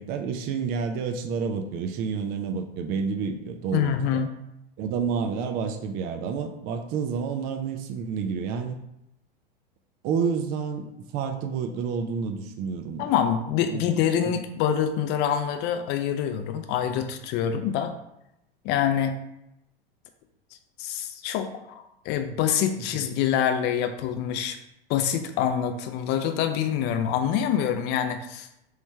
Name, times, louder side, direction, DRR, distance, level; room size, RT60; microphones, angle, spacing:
voice 1, 0.0-3.9 4.8-8.8 10.0-13.1 13.7-13.9 22.8-22.9, right 6 dB, 30° right, 5 dB, 0.4 m, -29 dB
voice 2, 3.7-4.3 13.0-17.9 18.6-19.2 20.8-24.6 24.9-28.5, left 9 dB, 35° left, 8 dB, 0.5 m, -26 dB
3.1 x 3.1 x 3.3 m, 0.83 s
hypercardioid pair, 90°, 29 cm